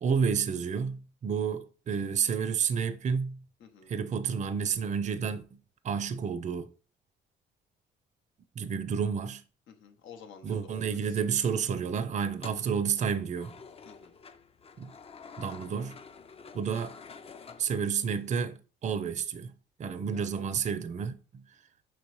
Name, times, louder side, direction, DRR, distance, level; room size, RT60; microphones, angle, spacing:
voice 1, 0.0-3.4 3.9-5.4 5.8-6.7 8.6-9.4 10.4-13.5 14.8-14.9 15.4-16.0 16.5-17.0 17.6-19.5 19.8-21.4, right 6 dB, 35° right, 0.4 m, -30 dB
voice 2, 3.6-3.9 9.7-11.2 13.8-14.2 20.1-20.5, left 6 dB, 80° left, 0.8 m, -51 dB
sound 1, 12.3-18.3, left 5 dB, 30° left, 0.4 m, -49 dB
5.3 x 3.0 x 3.1 m
cardioid pair, 90°, 20 cm